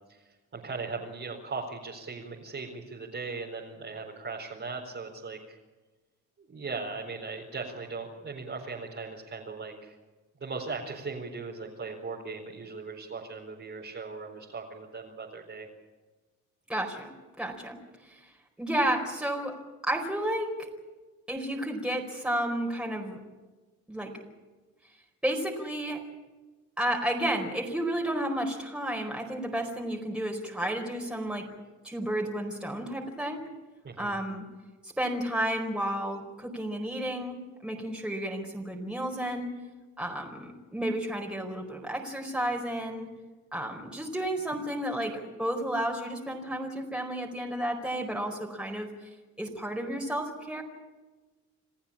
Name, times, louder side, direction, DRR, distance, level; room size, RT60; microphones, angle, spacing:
voice 1, 0.0-5.6 6.4-10.0 10.4-15.7 33.8-34.2, right 4 dB, 40° right, -3 dB, 4.4 m, -38 dB
voice 2, 16.7-17.8 18.0-18.2 18.6-19.5 19.8-20.7 21.3-23.2 23.9-24.1 25.2-26.0 26.8-31.4 31.8-33.4 34.0-34.5 34.8-39.5 40.0-43.1 43.5-48.9 49.4-50.6, right 1 dB, 5° right, 0 dB, 4.6 m, -32 dB
28.0 x 15.0 x 8.7 m, 1.2 s
cardioid pair, 90°, 30 cm